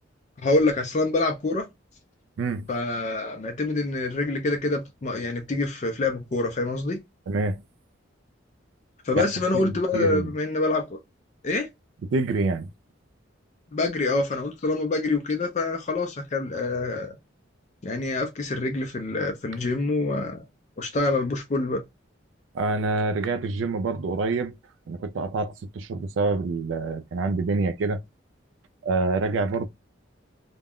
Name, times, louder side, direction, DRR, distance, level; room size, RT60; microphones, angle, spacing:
voice 1, 0.4-1.7 2.7-7.0 9.0-11.0 11.4-11.7 13.7-17.2 17.8-20.4 20.8-21.8, left 2 dB, 35° left, 0.4 m, -26 dB
voice 2, 7.3-7.6 9.1-9.3 9.5-10.3 12.1-12.7 22.5-24.5 24.9-28.0 28.8-29.7, right 3 dB, 85° right, 0.4 m, -26 dB
2.3 x 2.1 x 3.4 m
head